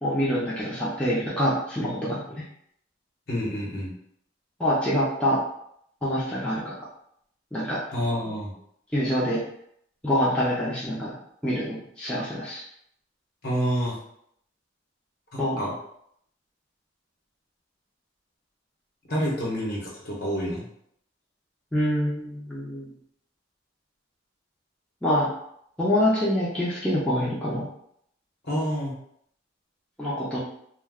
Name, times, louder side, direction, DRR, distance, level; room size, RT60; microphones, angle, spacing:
voice 1, 0.0-2.4 4.6-5.4 6.0-6.7 7.5-7.8 8.9-9.4 10.0-11.1 11.4-12.6 15.4-15.6 21.7-22.9 25.0-25.3 25.8-27.7 30.0-30.4, equal, 5° left, -8 dB, 0.5 m, -25 dB
voice 2, 3.3-3.9 7.9-8.5 13.4-14.0 15.3-15.7 19.1-20.6 28.4-28.9, equal, 50° left, -4 dB, 1.0 m, -28 dB
2.4 x 2.2 x 3.5 m, 0.70 s
head